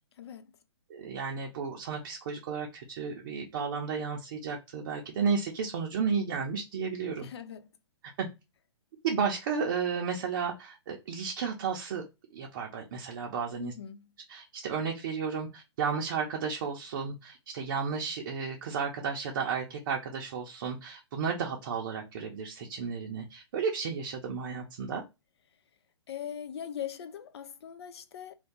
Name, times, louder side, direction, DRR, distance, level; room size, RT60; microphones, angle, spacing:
voice 1, 0.2-0.6 7.2-7.7 13.6-14.1 26.1-28.3, left 9 dB, 65° left, 0.5 m, -41 dB
voice 2, 0.9-7.3 8.2-8.3 9.0-12.0 12.3-13.7 14.3-25.0, right 6 dB, 45° right, 0.6 m, -33 dB
2.6 x 2.2 x 3.6 m
hypercardioid pair, 145°, 15 cm